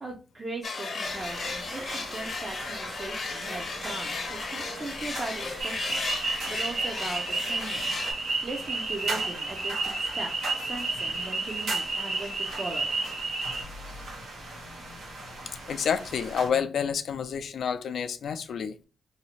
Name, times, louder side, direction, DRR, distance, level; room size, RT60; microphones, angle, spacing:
voice 1, 0.0-6.0 6.3-7.9 8.4-12.9, right 2 dB, 30° right, 0.5 m, -39 dB
sound 1, 0.6-8.1, left 4 dB, 55° left, 0.7 m, -35 dB
sound 2, 1.0-16.5, right 2 dB, 90° right, 0.9 m, -40 dB
sound 3, 5.6-13.6, right 3 dB, 70° right, 1.3 m, -31 dB
voice 2, 13.9-15.0 15.7-18.9, left 7 dB, 75° left, 0.3 m, -30 dB
2.7 x 2.0 x 2.8 m
cardioid pair, 105°, 0 cm